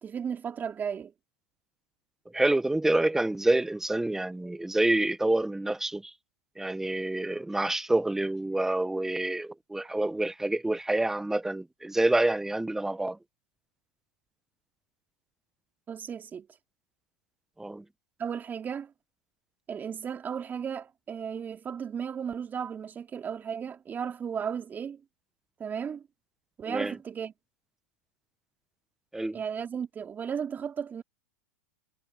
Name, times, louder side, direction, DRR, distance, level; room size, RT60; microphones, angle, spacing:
voice 1, 0.0-1.1 15.9-16.5 18.2-18.9 19.7-25.0 25.6-26.0 26.6-27.3 29.3-31.0, right 7 dB, 25° right, 3.0 m, -35 dB
voice 2, 2.3-6.1 6.6-13.2 17.6-17.8 26.7-26.9 29.1-29.4, right 2 dB, 5° right, 1.0 m, -27 dB
hypercardioid pair, 110°, 8 cm